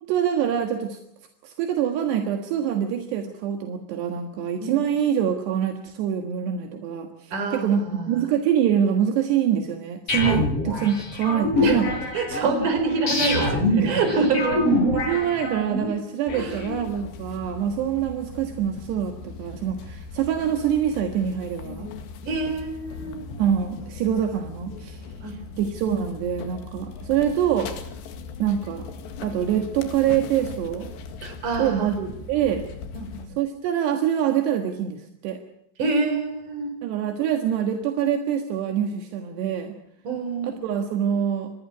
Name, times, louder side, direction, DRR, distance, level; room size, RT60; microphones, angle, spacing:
voice 1, 0.0-1.0 1.4-11.9 13.7-14.0 14.9-21.9 23.4-27.7 28.4-28.9 29.2-30.9 31.6-32.6 33.4-35.4 36.8-39.8 40.4-41.5, right 9 dB, 75° right, 5 dB, 3.7 m, -25 dB
voice 2, 7.3-8.2 11.6-11.8 12.1-14.7 16.3-16.6 22.2-23.2 25.2-25.6 31.2-31.9 32.9-33.3 35.8-36.8 40.0-40.7, right 3 dB, 50° right, 7 dB, 5.7 m, -26 dB
sound 1, 10.1-15.9, left 2 dB, 35° left, 7.0 m, -25 dB
sound 2, 16.3-33.3, left 5 dB, 85° left, 4.2 m, -39 dB
26.5 x 20.5 x 6.2 m, 0.76 s
omnidirectional pair, 4.9 m